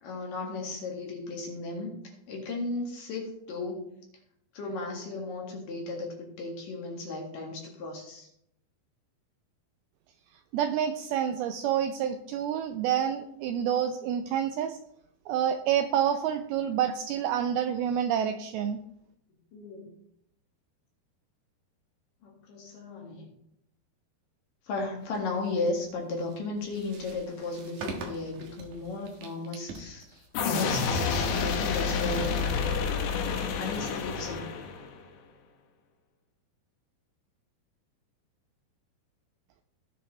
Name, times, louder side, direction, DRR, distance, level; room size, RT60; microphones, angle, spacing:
voice 1, 0.0-3.9 4.5-8.3 19.5-19.9 22.2-23.3 24.6-32.9 33.2-34.5, left 3 dB, 60° left, -1 dB, 3.2 m, -35 dB
voice 2, 10.5-14.8 15.3-18.8, right 9 dB, 85° right, 8 dB, 2.2 m, -28 dB
sound 1, 25.0-33.7, right 3 dB, 60° right, 2.3 m, -46 dB
sound 2, 30.3-35.0, left 5 dB, 85° left, 3.4 m, -29 dB
17.5 x 7.1 x 3.2 m, 0.76 s
omnidirectional pair, 4.9 m